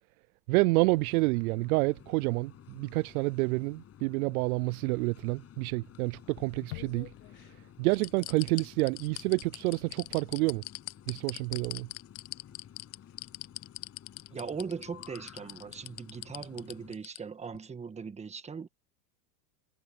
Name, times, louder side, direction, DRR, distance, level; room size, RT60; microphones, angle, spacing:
voice 1, 0.5-7.1 7.8-10.6 11.1-11.9, right 24 dB, 65° right, 0.5 m, -28 dB
sound 1, 0.8-17.0, left 10 dB, 30° left, 7.3 m, -54 dB
sound 2, 6.2-7.5 7.9-17.2 17.5-17.6, left 24 dB, 60° left, 0.8 m, -42 dB
voice 2, 14.3-18.7, right 5 dB, 15° right, 1.4 m, -39 dB
supercardioid pair, 125°, 49 cm